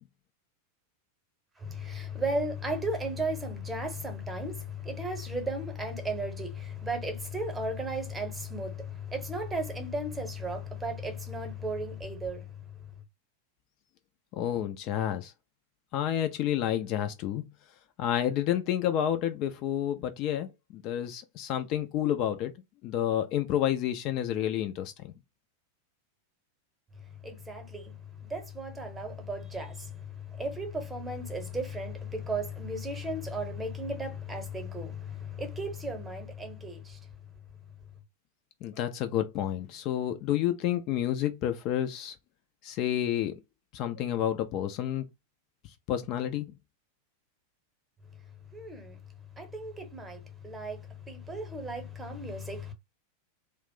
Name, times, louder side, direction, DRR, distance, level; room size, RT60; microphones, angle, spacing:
voice 1, 1.6-12.5 27.2-27.9 28.2-37.0 48.5-49.0 49.4-52.7, equal, 15° right, 0.8 m, -35 dB
voice 2, 14.3-15.3 15.9-17.4 18.0-22.5 22.8-25.1 38.6-42.2 42.6-43.3 43.7-45.0 45.9-46.5, left 11 dB, 40° left, 0.3 m, -29 dB
2.4 x 2.0 x 3.6 m
figure-of-eight pair, 90°, 0 cm